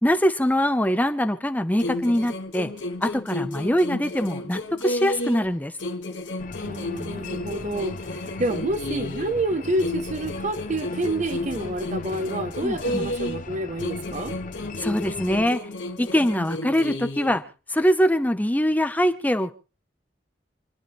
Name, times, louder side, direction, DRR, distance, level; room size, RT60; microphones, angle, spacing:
voice 1, 0.0-2.7 3.0-5.7 12.6-13.1 14.8-15.6 16.0-17.4 17.7-19.6, equal, 10° left, 0.7 m, -23 dB
sound 1, 1.8-5.5 5.8-9.4 9.8-13.5 13.8-17.4, left 1 dB, 90° left, 1.5 m, -32 dB
sound 2, 6.4-15.5, left 3 dB, 50° left, 0.7 m, -39 dB
voice 2, 6.6-14.4, right 1 dB, 45° right, 0.8 m, -28 dB
28.0 x 11.0 x 3.1 m
head